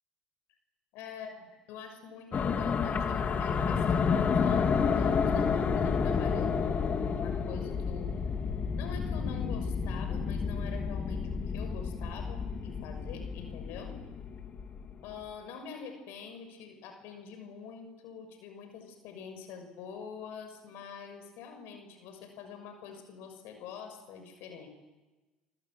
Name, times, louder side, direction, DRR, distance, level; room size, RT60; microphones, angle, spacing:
voice 1, 0.9-1.4 1.7-8.1 8.8-14.0 15.0-24.7, left 6 dB, 70° left, 6 dB, 6.5 m, -45 dB
sound 1, 2.3-14.9, left 6 dB, 45° left, 3.0 m, -30 dB
27.5 x 27.0 x 7.9 m, 1.2 s
hypercardioid pair, 70°, 4 cm